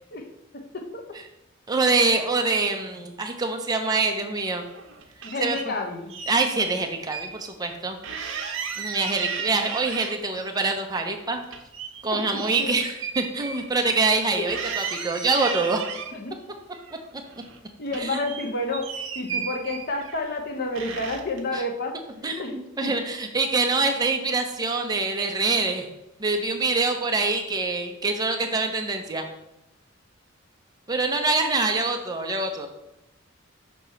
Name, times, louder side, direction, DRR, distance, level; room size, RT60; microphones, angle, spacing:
voice 1, 0.5-1.0 5.2-6.1 12.1-12.2 12.6-12.8 16.1-16.3 17.8-22.0 22.4-22.5 22.8-22.9, left 2 dB, 50° left, 3 dB, 0.9 m, -30 dB
voice 2, 1.7-4.6 5.4-5.6 6.3-8.0 8.8-11.4 12.0-15.8 17.9-18.2 21.5-21.6 22.2-25.9 26.2-29.3 30.9-32.7, right 3 dB, 20° right, 3 dB, 0.7 m, -25 dB
sound 1, 4.6-5.7 6.1-7.3 7.6-7.7 8.0-10.4 10.8-14.2 14.5-16.1 16.7-17.6 17.9-20.4 20.8-21.4, right 6 dB, 70° right, 0.8 m, -35 dB
6.2 x 2.9 x 5.6 m, 0.89 s
head